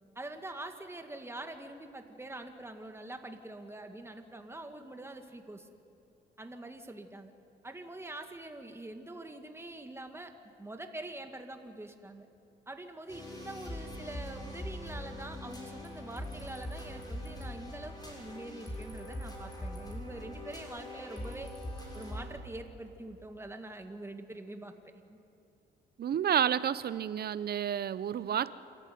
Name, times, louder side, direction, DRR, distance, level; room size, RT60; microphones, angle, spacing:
voice 1, 0.2-5.7 6.4-7.3 7.6-10.3 10.6-12.3 12.7-21.5 21.9-25.2, right 2 dB, 10° right, 6 dB, 2.0 m, -45 dB
sound 1, 13.1-22.2, left 1 dB, 20° left, 6.5 m, -42 dB
voice 2, 26.0-28.5, right 9 dB, 50° right, 16 dB, 0.7 m, -30 dB
27.0 x 14.5 x 9.5 m, 2.7 s
cardioid pair, 90°, 20 cm